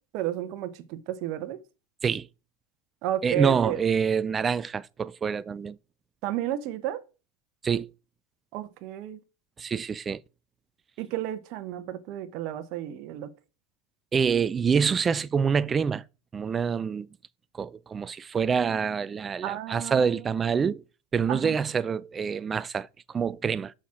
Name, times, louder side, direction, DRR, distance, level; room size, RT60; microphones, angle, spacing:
voice 1, 0.1-1.6 3.0-3.8 6.2-7.0 8.5-9.2 11.0-13.3 19.4-20.2 21.3-21.6, right 12 dB, 55° right, 1.0 m, -32 dB
voice 2, 3.2-5.8 7.6-7.9 9.6-10.2 14.1-16.0 16.3-17.1 17.5-20.8 21.1-23.7, right 6 dB, 25° right, 0.5 m, -26 dB
7.0 x 6.0 x 5.9 m
hypercardioid pair, 100°, 0 cm